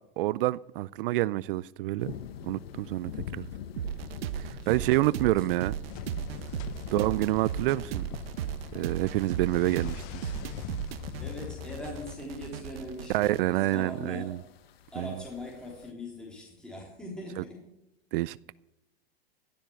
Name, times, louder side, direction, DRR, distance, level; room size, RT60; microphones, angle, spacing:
voice 1, 0.2-2.1 2.4-3.5 4.4-5.7 6.9-8.1 8.7-10.3 13.1-14.4 15.0-15.1 18.1-18.5, right 17 dB, 65° right, 0.5 m, -28 dB
sound 1, 2.0-15.9, left 8 dB, 85° left, 1.2 m, -46 dB
sound 2, 3.8-13.4, right 10 dB, 80° right, 0.9 m, -37 dB
voice 2, 4.6-5.7 6.9-7.0 11.2-14.5 14.9-17.7, left 1 dB, 5° left, 3.8 m, -42 dB
sound 3, 5.9-12.2, left 14 dB, 45° left, 0.7 m, -42 dB
15.5 x 7.3 x 7.9 m
hypercardioid pair, 125°, 30 cm